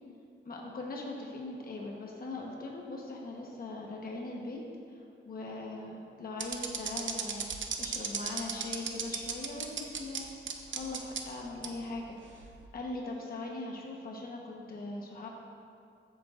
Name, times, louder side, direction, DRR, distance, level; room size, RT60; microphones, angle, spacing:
voice 1, 0.4-4.6 4.9-7.4 7.8-10.3 10.7-15.3, left 2 dB, 45° left, -1 dB, 1.1 m, -40 dB
sound 1, 6.4-10.2 10.5-11.2 11.6-11.7 12.4-12.6, right 6 dB, 65° right, 0.8 m, -34 dB
14.0 x 8.4 x 2.5 m, 2.4 s
wide cardioid pair, 125°, 21 cm